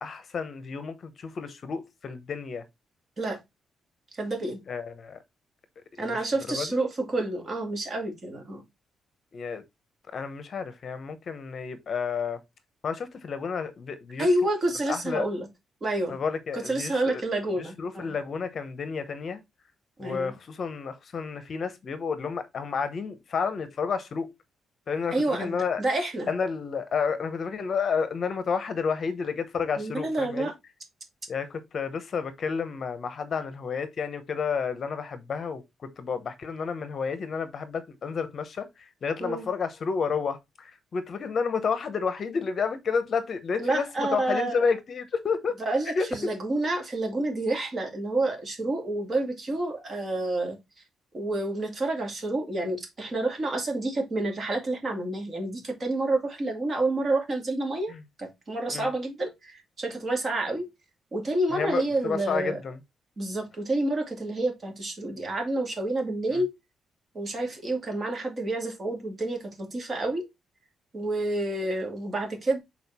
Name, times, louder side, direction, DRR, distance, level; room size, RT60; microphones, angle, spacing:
voice 1, 0.0-2.6 4.7-5.2 6.0-6.2 6.5-6.7 9.3-9.6 10.1-12.4 12.8-14.5 14.9-15.2 16.1-17.2 17.8-19.4 20.0-24.3 24.9-25.8 26.3-30.5 31.3-35.6 36.0-45.6 45.9-46.2 57.9-58.0 58.7-58.9 61.5-62.8 66.3-66.4, left 5 dB, 45° left, 0.9 m, -30 dB
voice 2, 4.1-4.6 6.0-8.6 14.2-15.5 15.8-16.2 16.5-18.2 20.0-20.3 25.1-26.3 29.8-30.5 39.2-39.5 43.6-44.6 45.6-50.6 51.1-60.7 61.1-62.6 63.2-66.5 67.1-70.2 70.9-72.6, right 2 dB, 30° right, 2.3 m, -29 dB
6.4 x 4.3 x 4.2 m
cardioid pair, 155°, 0 cm